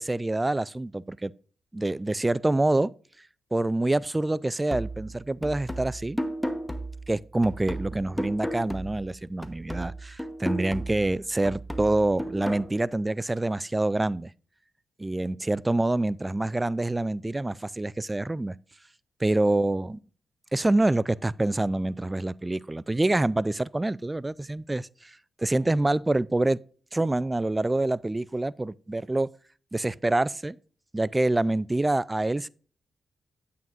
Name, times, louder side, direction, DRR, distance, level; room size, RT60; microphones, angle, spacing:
voice 1, 0.0-1.3 1.7-2.9 3.5-6.2 7.1-14.3 15.0-18.6 19.2-20.0 20.5-26.6 26.9-29.3 29.7-30.6 30.9-32.5, right 2 dB, 20° right, 0.3 m, -26 dB
sound 1, 4.7-9.1 9.4-12.7, equal, 5° left, 1.1 m, -34 dB
8.9 x 8.4 x 2.5 m
cardioid pair, 55°, 0 cm